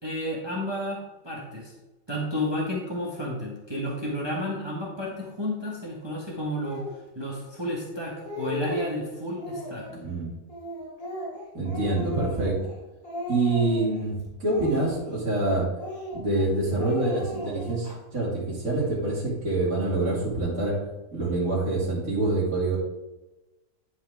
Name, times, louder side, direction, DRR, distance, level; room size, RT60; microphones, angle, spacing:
voice 1, 0.0-1.7 2.1-6.8 7.1-9.8, left 1 dB, 15° right, -4 dB, 1.5 m, -31 dB
Speech, 6.6-6.9 7.7-7.8 8.1-9.0 9.4-10.0 10.5-12.8 13.0-14.0 14.5-15.4 15.8-16.5 16.8-17.9, left 1 dB, 75° left, 3.3 m, -36 dB
voice 2, 10.0-10.3 11.5-12.6 13.3-15.7 16.1-20.7 21.1-22.8, right 2 dB, 55° right, -8 dB, 2.9 m, -26 dB
11.0 x 4.8 x 3.6 m, 1.1 s
omnidirectional pair, 1.6 m